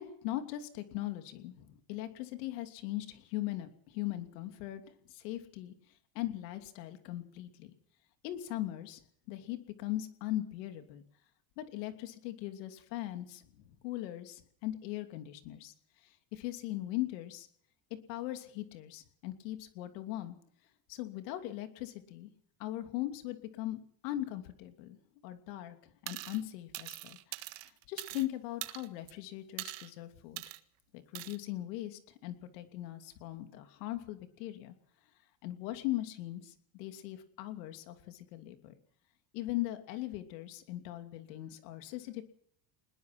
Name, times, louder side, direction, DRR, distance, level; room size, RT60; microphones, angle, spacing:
voice 1, 0.0-4.8 5.1-5.7 6.1-7.7 8.2-9.0 9.3-11.0 11.6-13.4 13.8-15.7 16.0-17.5 18.1-20.4 20.9-22.3 22.6-25.0 25.2-25.8 26.0-27.2 27.9-30.4 30.9-34.7 35.4-38.7 39.3-42.2, left 15 dB, 85° left, 8 dB, 3.0 m, -39 dB
sound 1, 26.1-26.4 26.7-28.3 28.6-29.1 29.6-29.9 30.4-30.6 31.1-31.4, right 20 dB, 85° right, 1.8 m, -42 dB
21.5 x 20.5 x 6.0 m, 0.63 s
supercardioid pair, 120°, 48 cm